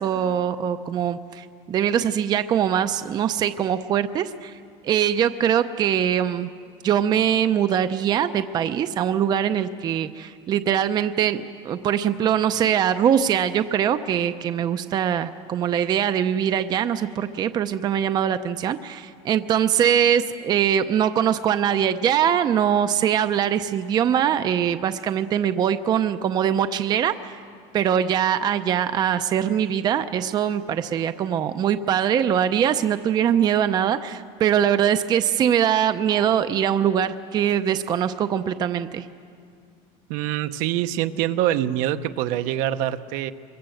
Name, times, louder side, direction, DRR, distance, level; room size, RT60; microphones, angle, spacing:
voice 1, 0.0-4.5 4.8-6.5 6.8-27.4 27.7-39.1, right 9 dB, 30° right, 10 dB, 0.6 m, -22 dB
voice 2, 40.1-43.3, right 12 dB, 65° right, 11 dB, 0.9 m, -25 dB
25.5 x 22.5 x 7.8 m, 2.2 s
cardioid pair, 170°, 14 cm